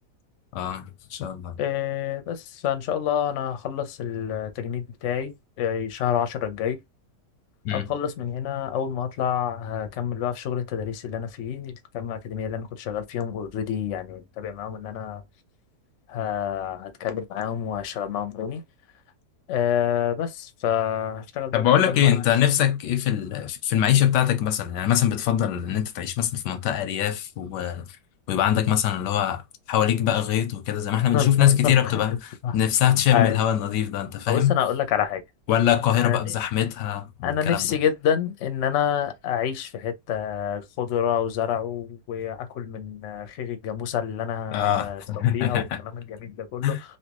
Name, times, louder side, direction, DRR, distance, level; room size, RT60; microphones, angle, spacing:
voice 1, 0.5-1.6 7.6-7.9 21.5-27.8 28.3-29.4 29.7-34.6 35.5-37.8 44.5-45.8 46.6-46.8, left 10 dB, 90° left, 1.3 m, -23 dB
voice 2, 1.6-6.8 7.7-15.2 16.1-18.6 19.5-22.1 31.1-32.0 32.4-32.5 33.1-33.4 34.3-35.2 36.0-36.3 37.2-45.0 45.3-45.6 45.9-46.7, left 9 dB, 60° left, 0.8 m, -28 dB
3.3 x 2.8 x 2.9 m
omnidirectional pair, 1.8 m